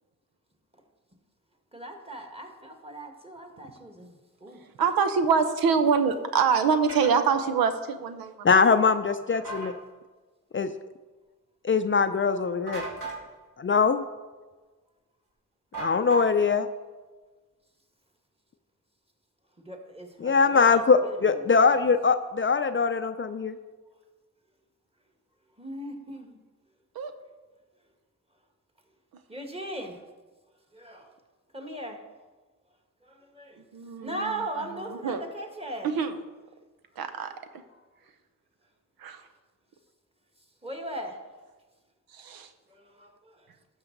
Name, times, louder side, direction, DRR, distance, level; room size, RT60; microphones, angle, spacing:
voice 1, 1.7-4.6 19.6-21.9 25.6-26.4 29.3-30.0 30.7-31.1 31.5-32.0 33.0-33.6 34.0-36.0 40.6-41.2 42.7-43.5, right 1 dB, 15° right, 4 dB, 1.6 m, -39 dB
voice 2, 4.8-8.5 27.0-27.1 33.7-34.3 35.0-35.2 35.8-36.1 37.0-37.3 39.0-39.2 42.1-42.5, right 6 dB, 80° right, 9 dB, 0.7 m, -25 dB
sound 1, 6.9-7.1 9.3-9.7 12.7-13.2 15.7-16.5, right 3 dB, 60° right, 3.2 m, -37 dB
voice 3, 8.4-9.7 10.5-10.7 11.6-12.8 13.6-14.0 15.8-16.7 20.2-23.6, left 5 dB, 35° left, 10 dB, 0.5 m, -22 dB
12.0 x 6.3 x 3.9 m, 1.3 s
cardioid pair, 55°, 35 cm